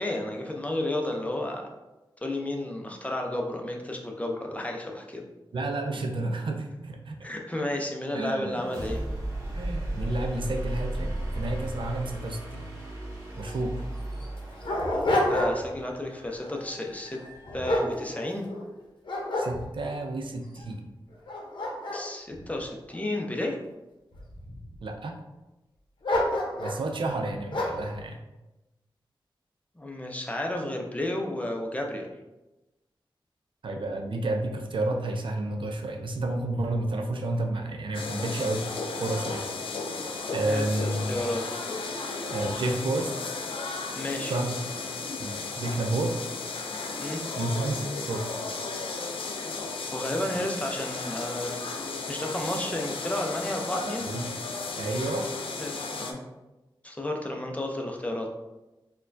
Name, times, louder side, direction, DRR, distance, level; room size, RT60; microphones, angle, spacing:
voice 1, 0.0-1.7 2.2-5.2 7.2-9.0 15.3-17.2 17.5-18.5 21.9-23.6 29.8-32.1 40.4-41.4 43.9-44.3 47.0-47.2 49.9-51.6 52.1-54.1 55.6-56.2 56.8-58.3, left 1 dB, 15° left, 1 dB, 0.5 m, -32 dB
voice 2, 5.5-7.2 8.1-8.6 9.5-12.6 13.3-13.9 19.4-20.9 24.8-25.2 26.6-28.2 33.6-38.6 39.0-39.4 40.3-41.1 42.3-43.3 44.3-44.6 45.2-46.2 47.4-48.3 54.0-54.2 54.8-55.3, right 2 dB, 65° right, 3 dB, 0.4 m, -30 dB
sound 1, 8.4-18.2, right 1 dB, 35° right, 1.1 m, -36 dB
Dog, 13.5-13.6 14.2-15.8 16.2-16.5 17.1-18.6 19.0-20.0 20.6-20.7 21.1-23.5 24.1-24.7 26.0-26.8 27.5-27.9, left 1 dB, 65° left, 0.7 m, -29 dB
sound 2, 37.9-56.1, left 4 dB, 90° left, 0.4 m, -34 dB
4.1 x 2.2 x 2.6 m, 1.0 s
wide cardioid pair, 75°, 9 cm